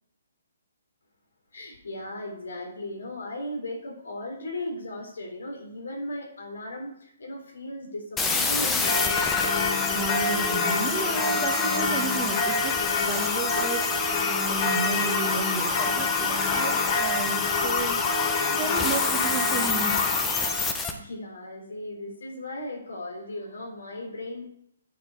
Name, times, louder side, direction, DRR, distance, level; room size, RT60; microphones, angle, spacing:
voice 1, 1.5-9.3 20.9-24.4, left 1 dB, 75° left, 1 dB, 3.5 m, -37 dB
sound 1, 8.2-20.9, left 4 dB, 15° left, 1.0 m, -29 dB
Singing / Church bell, 8.8-20.7, left 4 dB, 40° left, 1.4 m, -27 dB
voice 2, 9.9-18.0 18.4-19.9, right 5 dB, 20° right, 2 dB, 1.5 m, -33 dB
9.7 x 7.0 x 4.7 m, 0.70 s
hypercardioid pair, 140°, 0 cm